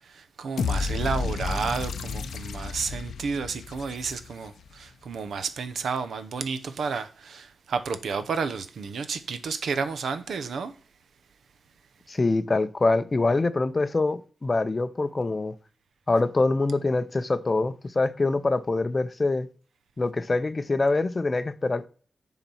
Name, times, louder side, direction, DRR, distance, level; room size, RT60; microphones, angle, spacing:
voice 1, 0.1-10.7, right 5 dB, 80° right, 0.8 m, -31 dB
sound 1, 0.6-4.7, left 5 dB, 90° left, 0.5 m, -31 dB
voice 2, 12.1-15.5 16.1-19.5 20.0-21.9, left 3 dB, 25° left, 0.5 m, -24 dB
7.1 x 4.0 x 5.4 m
wide cardioid pair, 150°, 0 cm